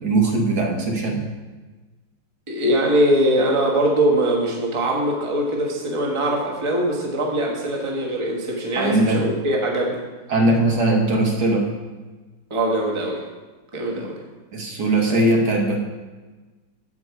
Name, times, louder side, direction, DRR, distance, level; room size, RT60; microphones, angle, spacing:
voice 1, 0.0-1.2 8.8-9.2 10.3-11.7 14.5-15.8, right 2 dB, 60° right, 1 dB, 1.8 m, -20 dB
voice 2, 2.5-10.0 12.5-13.2 13.7-14.2 15.1-15.2, right 1 dB, 20° right, -1 dB, 1.2 m, -22 dB
14.5 x 4.8 x 4.7 m, 1.3 s
omnidirectional pair, 2.0 m